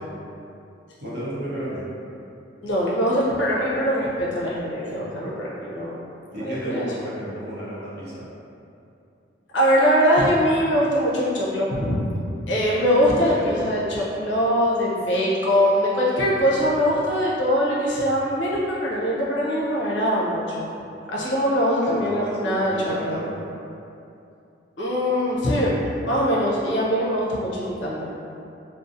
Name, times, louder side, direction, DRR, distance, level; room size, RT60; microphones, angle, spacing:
voice 1, 1.0-1.9 6.3-8.3 13.4-13.6 21.8-22.6 22.9-23.4, right 1 dB, 60° right, -9 dB, 0.7 m, -32 dB
voice 2, 2.6-6.0 6.3-6.9 9.5-12.1 12.5-20.7 21.1-23.2 24.8-28.1, equal, 70° left, -6 dB, 0.6 m, -22 dB
2.6 x 2.0 x 2.5 m, 2.7 s
head